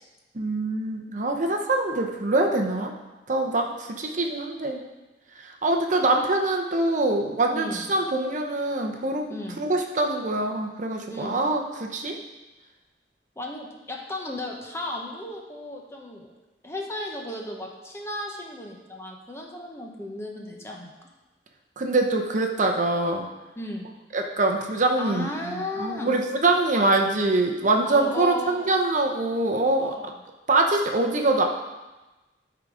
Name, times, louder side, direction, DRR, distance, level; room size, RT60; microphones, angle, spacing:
voice 1, 0.3-2.9 3.3-4.8 5.4-12.2 21.8-23.3 24.1-29.9 30.5-31.4, right 2 dB, 45° right, 2 dB, 0.7 m, -24 dB
voice 2, 7.5-7.8 9.3-9.6 11.1-11.4 13.4-16.3 16.6-20.9 23.6-23.9 25.0-26.2 27.8-28.7 29.8-30.1, left 1 dB, 15° left, 0 dB, 1.0 m, -35 dB
12.0 x 4.0 x 4.9 m, 1.1 s
head